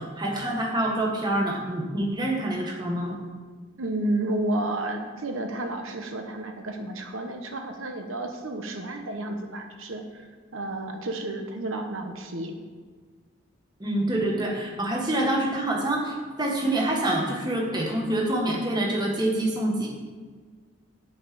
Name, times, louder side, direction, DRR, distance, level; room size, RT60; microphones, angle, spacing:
voice 1, 0.0-3.2 13.8-19.9, right 1 dB, 20° right, -1 dB, 1.6 m, -26 dB
voice 2, 3.8-12.5, right 1 dB, 75° right, 4 dB, 1.1 m, -31 dB
10.5 x 5.3 x 7.8 m, 1.5 s
head